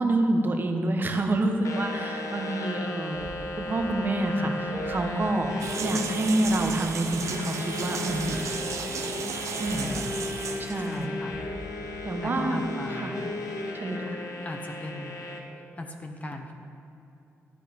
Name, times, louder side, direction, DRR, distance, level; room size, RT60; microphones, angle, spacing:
voice 1, 0.0-3.3 3.6-8.5 9.6-9.9 10.6-11.1 12.0-12.6 12.9-13.1 13.7-14.1, right 1 dB, 40° right, 4 dB, 1.2 m, -27 dB
sound 1, 1.6-15.4, left 2 dB, 85° left, 1.4 m, -35 dB
sound 2, 3.1-3.4 3.8-3.9 4.7-5.0 5.4-5.5 6.4-6.6 7.0-7.1 8.1-8.3 8.6-8.7 9.6-9.9 10.3-10.4 11.3-11.5 11.9-12.1, right 1 dB, 5° right, 1.9 m, -45 dB
sound 3, 5.6-11.1, right 6 dB, 75° right, 0.8 m, -35 dB
voice 2, 9.7-10.2 10.9-11.4 12.2-13.1 14.4-15.2 15.8-16.5, left 1 dB, 25° left, 4 dB, 1.0 m, -37 dB
12.5 x 8.3 x 5.3 m, 2.7 s
cardioid pair, 105°, 5 cm